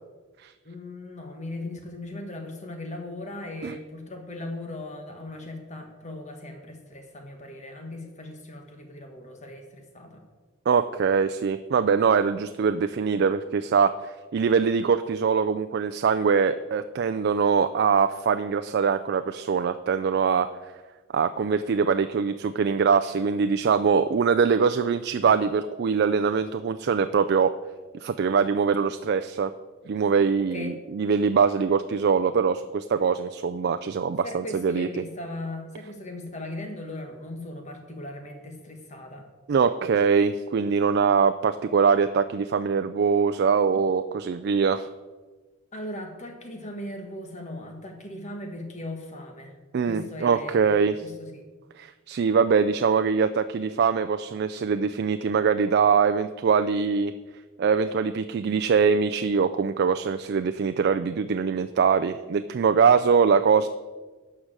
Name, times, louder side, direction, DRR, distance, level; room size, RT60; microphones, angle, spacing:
voice 1, 0.6-10.2 30.4-30.8 34.2-39.3 45.7-49.6 49.9-51.4, left 1 dB, 35° left, 4 dB, 1.6 m, -38 dB
voice 2, 10.7-20.5 21.1-27.5 28.0-29.5 29.9-34.9 39.5-44.9 49.7-51.0 51.8-57.1 57.6-63.7, right 6 dB, 55° right, 9 dB, 0.4 m, -23 dB
11.5 x 4.9 x 7.4 m, 1.3 s
head